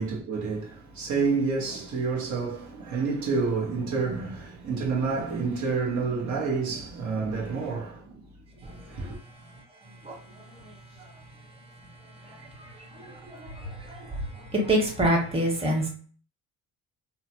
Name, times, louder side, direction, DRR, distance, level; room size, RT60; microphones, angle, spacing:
voice 1, 0.0-8.1 8.7-9.2, right 4 dB, 55° right, 0.9 m, -29 dB
voice 2, 8.6-9.2 9.5-11.2 12.1-15.9, right 1 dB, 15° right, 1.2 m, -30 dB
2.8 x 2.1 x 2.9 m
supercardioid pair, 80°, 35 cm